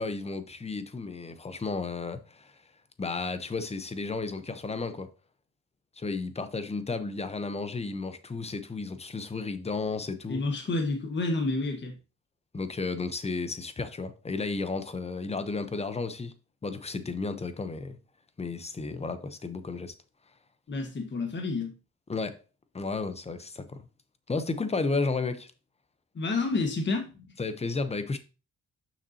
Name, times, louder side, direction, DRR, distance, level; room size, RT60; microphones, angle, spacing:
voice 1, 0.0-2.5 3.0-5.1 6.0-10.4 12.5-16.3 16.6-18.0 18.4-19.9 22.1-22.4 22.7-23.9 24.3-25.5 27.4-28.2, left 3 dB, 20° left, 0.8 m, -33 dB
voice 2, 10.3-12.0 20.7-21.7 26.1-27.1, left 3 dB, 40° left, 1.4 m, -29 dB
7.0 x 5.8 x 2.8 m
cardioid pair, 90°, 30 cm